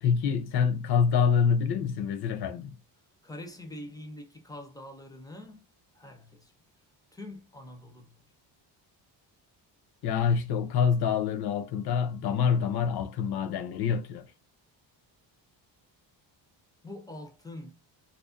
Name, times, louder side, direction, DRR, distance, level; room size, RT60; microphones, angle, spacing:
voice 1, 0.0-2.8 10.0-14.3, left 7 dB, 60° left, 0.6 m, -26 dB
voice 2, 3.2-5.7 5.9-6.5 7.1-8.1 16.8-17.8, left 1 dB, 10° left, 0.4 m, -44 dB
2.5 x 2.1 x 2.4 m
cardioid pair, 125°, 45 cm